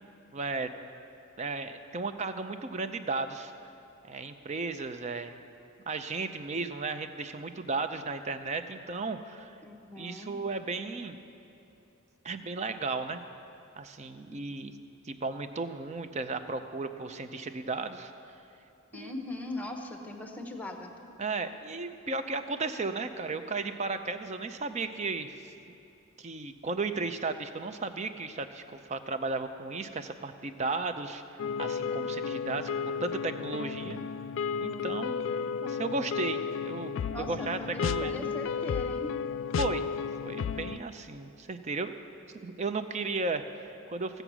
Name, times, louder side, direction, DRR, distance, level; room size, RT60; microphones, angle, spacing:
voice 1, 0.3-0.7 1.4-3.5 4.1-5.4 5.9-9.5 10.0-11.2 12.2-13.2 13.8-14.7 15.1-18.1 18.9-19.1 21.2-25.5 26.2-31.2 31.6-34.0 34.6-35.2 35.6-38.3 39.6-39.9 40.2-41.9 42.3-44.2, right 3 dB, 35° right, 9 dB, 0.5 m, -35 dB
voice 2, 9.6-10.3 18.9-20.9 37.1-39.2, left 2 dB, 5° left, 3 dB, 0.9 m, -40 dB
sound 1, 31.4-40.8, left 6 dB, 65° left, 0.3 m, -33 dB
16.0 x 7.9 x 6.1 m, 2.8 s
head